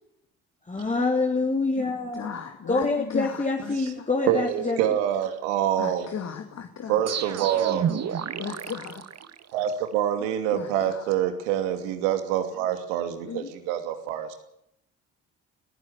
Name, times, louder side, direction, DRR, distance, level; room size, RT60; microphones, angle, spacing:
voice 1, 0.7-2.3 2.7-4.8, left 3 dB, 20° left, 1 dB, 3.3 m, -26 dB
voice 2, 2.1-4.1 5.8-6.9 8.4-9.0 10.5-10.9 13.3-13.5, left 7 dB, 50° left, 5 dB, 2.5 m, -36 dB
voice 3, 4.3-6.1 6.9-7.9 9.5-14.4, right 10 dB, 85° right, 7 dB, 2.7 m, -26 dB
sound 1, 7.1-9.8, right 8 dB, 45° right, 1.7 m, -31 dB
21.0 x 15.5 x 8.2 m, 0.77 s
hypercardioid pair, 60°, 35 cm